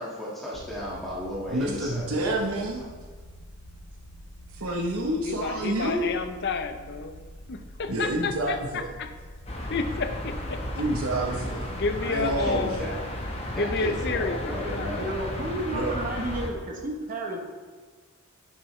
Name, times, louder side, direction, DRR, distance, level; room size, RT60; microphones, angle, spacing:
voice 1, 0.0-2.3 2.8-2.9 12.2-13.0 13.5-15.1, equal, ahead, -8 dB, 1.8 m, -35 dB
sound 1, 0.5-13.9, equal, 85° left, 1.2 m, -46 dB
voice 2, 1.5-2.8 4.5-6.2 7.9-8.9 10.7-11.7 12.0-12.8 15.7-15.9, right 1 dB, 80° right, 0 dB, 1.0 m, -28 dB
voice 3, 5.2-7.1 7.5-9.1 9.7-10.6 11.7-12.8 13.5-15.0, left 4 dB, 55° left, 8 dB, 0.7 m, -30 dB
sound 2, 9.5-16.5, left 1 dB, 30° left, 1.1 m, -34 dB
voice 4, 15.0-17.4, right 1 dB, 40° right, 1 dB, 1.1 m, -32 dB
10.5 x 7.4 x 3.2 m, 1.4 s
head